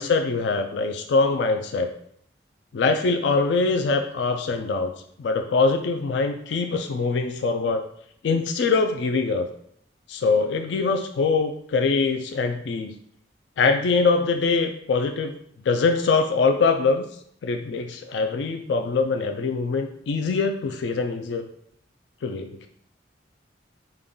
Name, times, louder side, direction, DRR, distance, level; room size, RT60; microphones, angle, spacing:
voice 1, 0.0-1.9 2.7-4.9 5.2-7.8 8.2-9.5 10.1-12.9 13.6-15.3 15.7-17.0 17.4-21.4 22.2-22.7, left 4 dB, 75° left, 5 dB, 0.4 m, -23 dB
5.3 x 2.3 x 3.7 m, 0.68 s
head